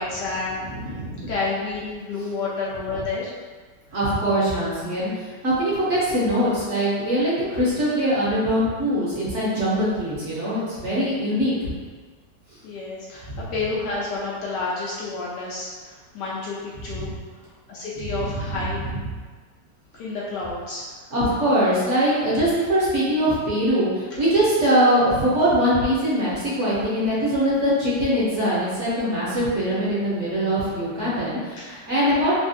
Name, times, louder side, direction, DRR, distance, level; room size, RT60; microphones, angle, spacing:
voice 1, 0.0-0.9 1.3-3.3 12.6-17.1 17.7-18.8 19.9-20.8 31.6-31.7, left 3 dB, 75° left, -6 dB, 1.2 m, -30 dB
voice 2, 0.7-1.3 3.9-11.7 13.2-13.4 17.0-17.1 18.2-18.4 21.1-32.4, equal, 50° right, -9 dB, 1.0 m, -22 dB
3.3 x 2.3 x 2.7 m, 1.4 s
omnidirectional pair, 2.0 m